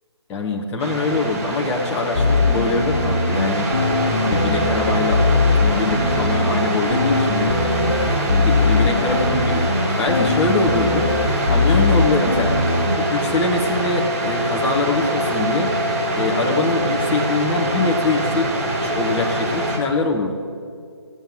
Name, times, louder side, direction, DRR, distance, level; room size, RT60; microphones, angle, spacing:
voice 1, 0.3-3.7 4.2-7.6 8.3-9.7 9.9-11.1 11.4-12.5 12.9-15.7 16.1-18.5 18.8-20.3, left 3 dB, 10° left, 0 dB, 1.4 m, -23 dB
sound 1, 0.8-19.8, right 1 dB, 30° right, 3.1 m, -24 dB
sound 2, 2.1-13.0, left 3 dB, 55° left, 1.6 m, -20 dB
17.0 x 9.2 x 9.3 m, 2.1 s
figure-of-eight pair, 150°, 14 cm